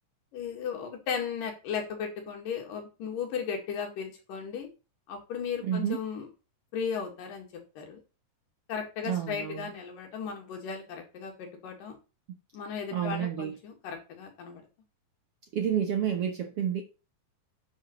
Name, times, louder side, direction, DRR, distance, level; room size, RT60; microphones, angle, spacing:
voice 1, 0.3-4.7 5.1-6.3 6.7-8.0 8.7-12.0 12.5-14.6, left 6 dB, 80° left, 3.7 m, -36 dB
voice 2, 5.6-6.0 9.0-9.7 12.9-13.5 15.5-16.8, right 9 dB, 65° right, 1.5 m, -29 dB
9.1 x 4.0 x 6.7 m
omnidirectional pair, 3.8 m